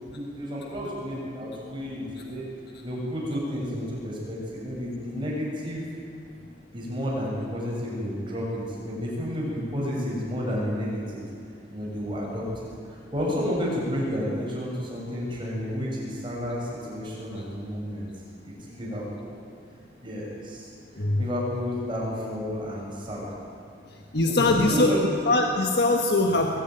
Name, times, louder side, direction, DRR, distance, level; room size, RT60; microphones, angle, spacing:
voice 1, 0.1-2.4 2.8-5.9 6.7-11.3 11.7-12.5 13.1-18.1 18.4-19.3 20.0-20.7 21.2-23.3 24.3-25.2, equal, 30° right, -4 dB, 7.0 m, -31 dB
voice 2, 21.0-21.3 24.1-24.9 25.2-26.6, left 2 dB, 65° left, 2 dB, 1.5 m, -22 dB
22.0 x 15.0 x 9.3 m, 2.5 s
head